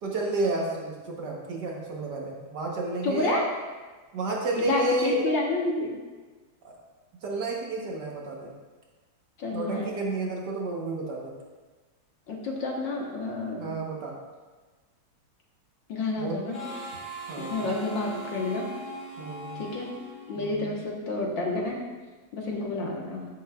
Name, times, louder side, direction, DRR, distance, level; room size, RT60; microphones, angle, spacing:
voice 1, 0.0-3.4 4.1-5.3 6.6-6.7 7.2-8.5 9.5-11.3 13.6-14.1 16.2-16.4 17.3-17.7 19.2-19.6 20.3-20.8, right 2 dB, 55° right, -2 dB, 1.6 m, -31 dB
voice 2, 3.0-3.5 4.6-5.9 9.4-10.0 12.3-13.7 15.9-16.6 17.4-18.7 19.6-19.9 20.3-21.8 22.3-23.3, left 2 dB, 65° left, -1 dB, 1.9 m, -29 dB
Harmonica, 16.5-21.0, right 1 dB, 25° left, 2.3 m, -40 dB
13.5 x 7.0 x 2.4 m, 1.3 s
omnidirectional pair, 2.3 m